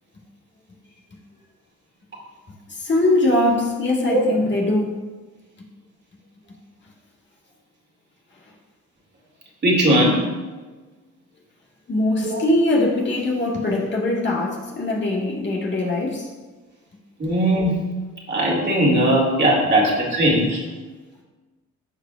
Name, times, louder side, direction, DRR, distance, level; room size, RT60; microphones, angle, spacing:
voice 1, 2.7-5.0 11.9-16.3, left 1 dB, 35° left, -3 dB, 1.7 m, -21 dB
voice 2, 9.6-10.3 12.2-12.4 17.2-17.8 18.3-20.6, right 1 dB, 35° right, -2 dB, 2.4 m, -19 dB
14.5 x 4.9 x 2.5 m, 1.3 s
cardioid pair, 90°, 30 cm